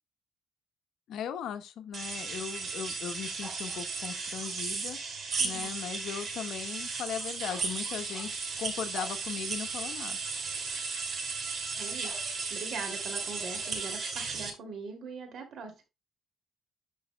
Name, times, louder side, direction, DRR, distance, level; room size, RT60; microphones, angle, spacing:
voice 1, 1.1-5.0 5.4-10.2, left 9 dB, 75° left, 0.9 m, -38 dB
sound 1, 1.9-14.5, right 4 dB, 50° right, 2.7 m, -35 dB
sound 2, 3.4-4.3 7.5-8.5 8.9-9.2 10.5-10.7 12.0-14.2, right 2 dB, 35° right, 2.2 m, -50 dB
voice 2, 5.4-5.7 11.8-15.8, right 4 dB, 65° right, 2.7 m, -42 dB
11.5 x 5.3 x 2.3 m
cardioid pair, 125°, 0 cm